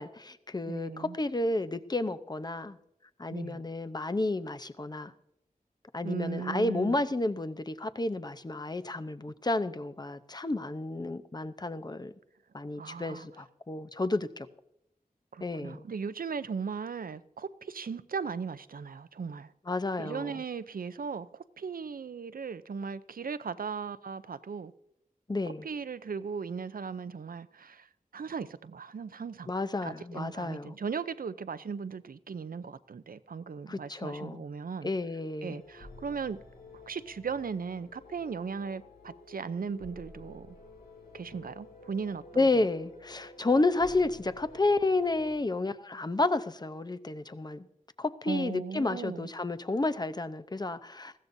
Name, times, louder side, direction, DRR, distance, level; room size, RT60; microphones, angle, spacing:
voice 1, 0.0-2.8 3.2-5.1 5.9-12.1 12.5-14.5 15.4-15.8 19.7-20.4 25.3-25.7 29.5-30.7 33.7-34.4 34.8-35.6 42.4-47.7 48.0-51.1, left 2 dB, 25° left, 0.7 m, -31 dB
voice 2, 0.7-1.2 3.3-3.6 6.0-7.0 12.8-13.3 15.3-19.5 20.0-24.7 25.6-27.9 28.1-29.5 29.8-34.9 35.4-36.4 36.9-40.6 41.1-42.7 48.3-49.3, right 5 dB, 75° right, 0.6 m, -37 dB
sound 1, 35.5-45.4, left 2 dB, 80° left, 2.4 m, -51 dB
20.0 x 15.5 x 2.7 m
wide cardioid pair, 70°, 15 cm